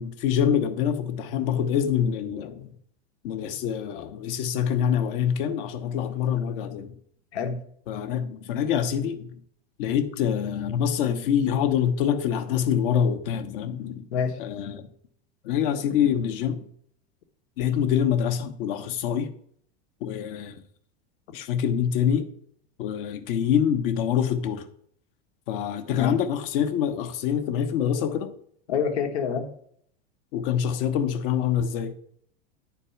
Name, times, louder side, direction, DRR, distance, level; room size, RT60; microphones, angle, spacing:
voice 1, 0.0-2.7 3.2-6.9 7.9-9.3 9.8-14.1 14.4-14.9 15.4-16.6 17.6-19.3 20.0-20.5 21.3-22.3 22.8-24.7 25.5-28.3 30.3-31.9, left 8 dB, 55° left, 1.1 m, -25 dB
voice 2, 28.7-29.5, left 6 dB, 85° left, 1.5 m, -27 dB
10.0 x 4.6 x 5.8 m
supercardioid pair, 150°, 32 cm